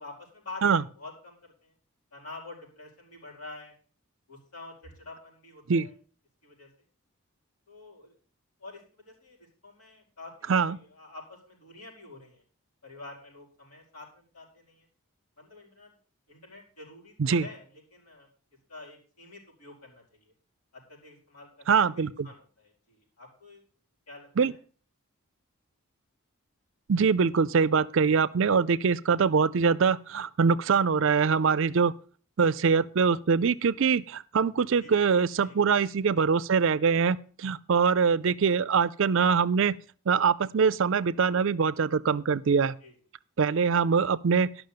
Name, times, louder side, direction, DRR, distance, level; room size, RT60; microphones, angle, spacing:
voice 1, 0.0-1.7 2.1-3.7 4.3-5.9 6.4-6.7 7.7-8.2 8.6-12.4 12.8-14.9 15.4-15.9 16.3-18.3 18.7-20.3 20.7-23.6 24.1-24.6 34.8-35.1 35.4-35.8 42.8-42.9, left 2 dB, 85° left, 5.1 m, -48 dB
voice 2, 21.7-22.3 24.4-24.5 26.9-31.9 32.4-39.8 40.1-42.7 43.4-44.5, right 5 dB, 60° right, 0.4 m, -23 dB
11.5 x 6.1 x 6.7 m
head